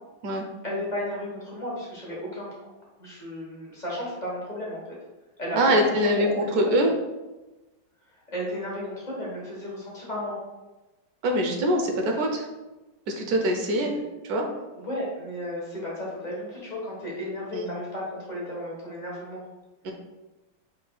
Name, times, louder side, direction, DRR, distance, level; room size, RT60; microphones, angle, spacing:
voice 1, 0.6-2.5 3.0-4.8 5.4-6.3 6.6-6.8 8.3-10.4 14.8-19.4, left 1 dB, 30° left, -6 dB, 1.2 m, -34 dB
voice 2, 5.5-6.9 11.2-12.5 13.1-13.9 14.2-14.5 17.5-17.7 19.8-19.9, equal, 65° right, 2 dB, 1.1 m, -23 dB
4.8 x 4.1 x 2.3 m, 1.1 s
omnidirectional pair, 2.0 m